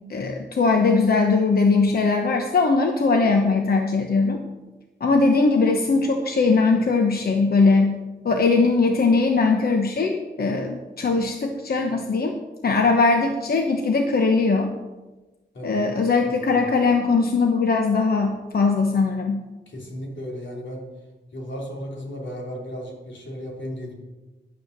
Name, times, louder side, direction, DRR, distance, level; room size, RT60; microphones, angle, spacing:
voice 1, 0.1-4.4 5.0-8.0 8.2-12.4 12.6-14.7 15.6-19.4, left 4 dB, 55° left, 3 dB, 1.0 m, -20 dB
voice 2, 19.7-20.9 21.3-23.9, equal, 85° left, -1 dB, 3.4 m, -35 dB
11.0 x 9.3 x 6.6 m, 1.2 s
wide cardioid pair, 145°, 19 cm